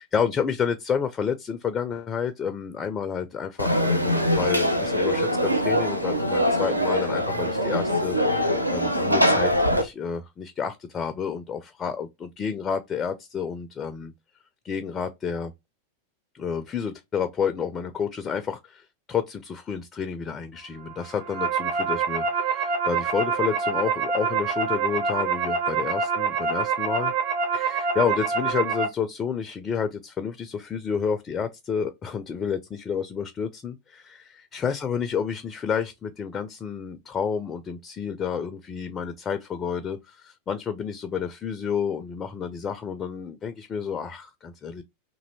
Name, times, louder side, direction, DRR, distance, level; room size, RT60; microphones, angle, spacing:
voice 1, 0.0-14.1 14.6-15.5 16.3-27.1 27.5-44.8, left 7 dB, 25° left, 0.3 m, -30 dB
Conversation / Crowd, 3.6-9.8, equal, 90° right, 0.5 m, -23 dB
sound 1, 21.0-28.9, right 5 dB, 60° right, 1.0 m, -26 dB
3.1 x 2.6 x 2.6 m
figure-of-eight pair, 90°, 0 cm